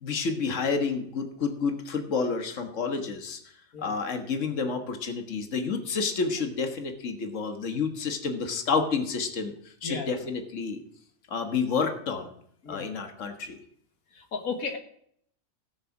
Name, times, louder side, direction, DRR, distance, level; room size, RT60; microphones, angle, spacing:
voice 1, 0.0-3.4 3.8-10.8 11.3-12.3 12.7-13.6, left 5 dB, 60° left, 5 dB, 1.8 m, -29 dB
voice 2, 9.8-10.3 12.6-12.9 14.1-14.8, left 4 dB, 85° left, 5 dB, 1.8 m, -34 dB
18.0 x 6.8 x 6.0 m, 0.67 s
omnidirectional pair, 1.5 m